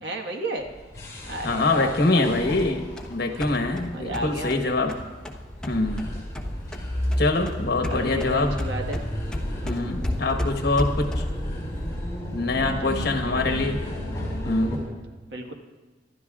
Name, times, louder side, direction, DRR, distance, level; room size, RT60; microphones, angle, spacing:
voice 1, 0.0-0.7 1.3-2.2 3.9-4.9 7.9-9.0 12.5-13.6 15.3-15.5, right 1 dB, 75° right, 2 dB, 1.5 m, -33 dB
sound 1, 0.6-14.8, equal, 20° left, 4.8 m, -33 dB
voice 2, 1.4-5.0 5.7-6.1 7.2-8.5 9.6-11.2 12.3-13.8 14.4-14.8, left 2 dB, 60° left, 4 dB, 1.2 m, -24 dB
sound 2, 2.6-6.9 7.1-11.5, left 1 dB, 5° left, 0.9 m, -33 dB
25.5 x 12.0 x 2.4 m, 1.2 s
head